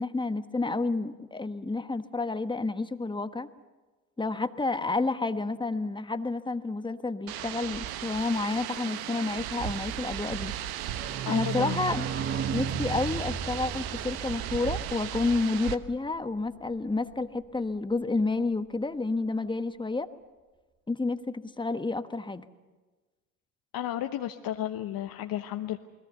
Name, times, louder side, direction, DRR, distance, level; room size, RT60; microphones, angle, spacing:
voice 1, 0.0-3.5 4.2-10.5 11.3-12.1 12.5-20.1 20.9-22.4, left 3 dB, 10° left, 11 dB, 1.3 m, -30 dB
sound 1, 7.3-15.8, right 12 dB, 60° right, 1.2 m, -36 dB
sound 2, 10.6-16.1 16.5-16.6 16.7-16.8 17.1-17.2, right 7 dB, 30° right, 1.9 m, -35 dB
voice 2, 11.2-11.8 23.7-25.8, left 12 dB, 55° left, 6 dB, 1.1 m, -33 dB
28.5 x 20.5 x 6.8 m, 1.3 s
hypercardioid pair, 60°, 41 cm